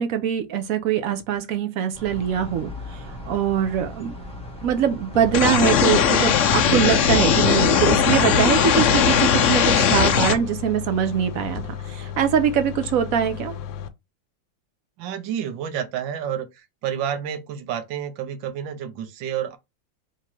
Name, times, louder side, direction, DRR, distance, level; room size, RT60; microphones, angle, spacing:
voice 1, 0.0-4.2 4.6-11.6 11.9-13.5, right 9 dB, 70° right, 0.8 m, -23 dB
sound 1, 1.9-9.5, left 1 dB, 5° left, 0.8 m, -38 dB
sound 2, 5.1-13.9, left 9 dB, 90° left, 1.4 m, -34 dB
sound 3, 5.3-10.3, left 7 dB, 75° left, 0.6 m, -18 dB
voice 2, 15.0-19.6, right 9 dB, 85° right, 1.4 m, -30 dB
3.7 x 3.0 x 4.3 m
omnidirectional pair, 2.1 m